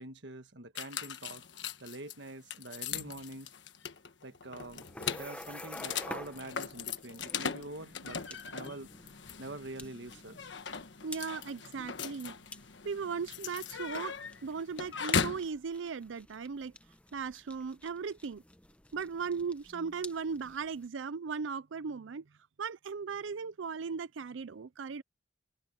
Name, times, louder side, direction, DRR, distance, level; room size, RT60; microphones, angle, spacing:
voice 1, 0.0-1.4 1.8-3.5 4.2-4.8 5.2-9.1 9.4-10.5, right 2 dB, 75° right, 1.4 m, -45 dB
sound 1, 0.7-15.5, left 6 dB, 75° left, 1.3 m, -39 dB
sound 2, 4.6-20.9, left 1 dB, 5° left, 1.0 m, -51 dB
voice 2, 11.0-12.4 12.8-14.1 14.4-16.7 17.1-18.4 18.9-22.2 22.6-25.0, right 5 dB, 90° right, 0.5 m, -37 dB
head